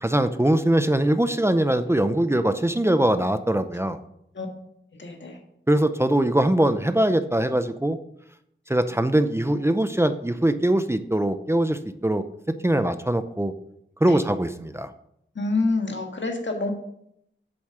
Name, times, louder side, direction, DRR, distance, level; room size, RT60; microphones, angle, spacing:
voice 1, 0.0-4.0 5.7-8.0 8.7-12.2 12.6-13.5 14.0-14.9, right 1 dB, 15° right, 10 dB, 0.5 m, -22 dB
voice 2, 4.9-5.4 14.1-14.2 15.3-16.7, left 3 dB, 70° left, 3 dB, 1.6 m, -27 dB
7.9 x 7.0 x 5.7 m, 0.76 s
wide cardioid pair, 80°, 20 cm